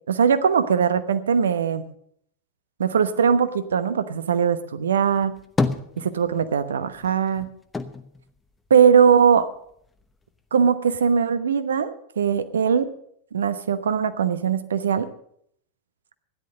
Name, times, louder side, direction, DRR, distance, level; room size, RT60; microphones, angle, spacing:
voice 1, 0.1-1.9 2.8-5.4 6.0-7.5 8.7-9.5 10.5-12.9 13.3-15.1, right 7 dB, 65° right, 12 dB, 1.0 m, -20 dB
sound 1, 5.1-6.6 6.9-9.3 9.7-10.6, left 3 dB, 10° left, 0.9 m, -30 dB
13.5 x 10.5 x 6.5 m, 0.68 s
figure-of-eight pair, 90°, 0 cm